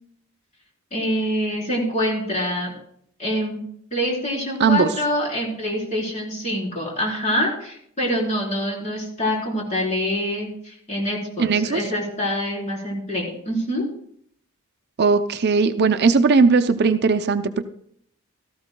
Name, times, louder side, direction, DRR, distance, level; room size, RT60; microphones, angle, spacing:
voice 1, 0.9-2.7 3.2-3.6 3.9-13.8, equal, 35° left, -3 dB, 3.9 m, -25 dB
voice 2, 4.6-4.9 11.4-11.8 15.0-17.6, right 4 dB, 50° right, 9 dB, 0.5 m, -18 dB
16.5 x 13.5 x 2.2 m, 0.67 s
head